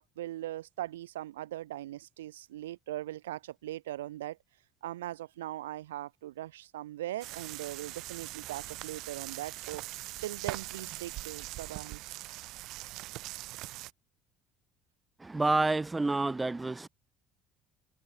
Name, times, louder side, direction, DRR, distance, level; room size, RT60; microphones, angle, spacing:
voice 1, 0.0-4.4 4.8-9.8 10.2-12.0, right 14 dB, 90° right, 3.3 m, -40 dB
sound 1, 7.2-13.9, right 18 dB, 70° right, 3.5 m, -42 dB
voice 2, 15.2-16.9, right 3 dB, 15° right, 0.4 m, -28 dB
hypercardioid pair, 65°, 0 cm